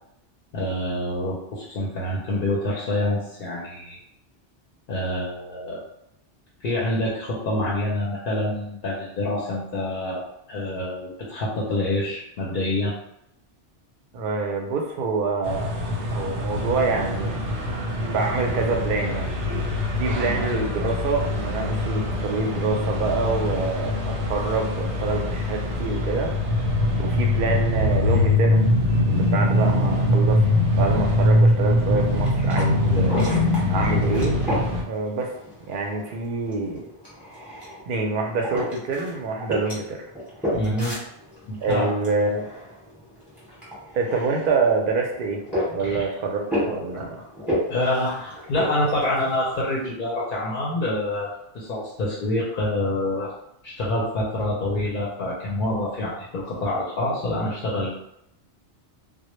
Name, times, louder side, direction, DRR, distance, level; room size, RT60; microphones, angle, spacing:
voice 1, 0.5-4.0 4.9-5.8 6.6-10.2 10.5-12.9 20.2-20.4 40.5-41.0 41.5-41.9 45.8-46.1 46.6-47.3 47.7-51.3 51.5-53.3 53.6-57.9, left 1 dB, 55° left, -5 dB, 0.6 m, -26 dB
voice 2, 14.1-15.7 16.1-17.4 18.0-19.4 20.0-26.3 27.0-28.6 29.0-30.4 30.7-33.2 33.7-34.4 34.9-35.3 35.7-36.9 37.9-40.0 41.6-42.5 43.9-45.4 45.7-47.2, right 3 dB, 60° right, 1 dB, 0.6 m, -26 dB
sound 1, 15.4-34.8, left 1 dB, 90° right, 1.0 m, -23 dB
sound 2, 32.0-49.8, equal, ahead, 0.9 m, -34 dB
2.1 x 2.0 x 3.0 m, 0.77 s
omnidirectional pair, 1.2 m